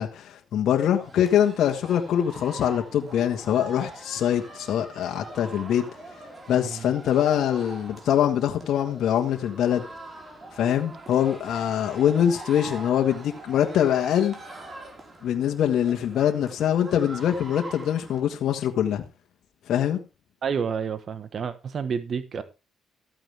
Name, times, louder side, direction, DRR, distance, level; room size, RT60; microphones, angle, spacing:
voice 1, 0.0-5.9 6.5-9.8 10.5-14.3 15.2-19.0 19.7-20.0, left 10 dB, 75° left, 1.6 m, -23 dB
sound 1, 1.0-18.2, right 2 dB, 30° right, 4.6 m, -43 dB
voice 2, 6.6-6.9 20.4-22.4, right 6 dB, 50° right, 1.3 m, -29 dB
14.0 x 9.1 x 3.5 m
cardioid pair, 90°, 0 cm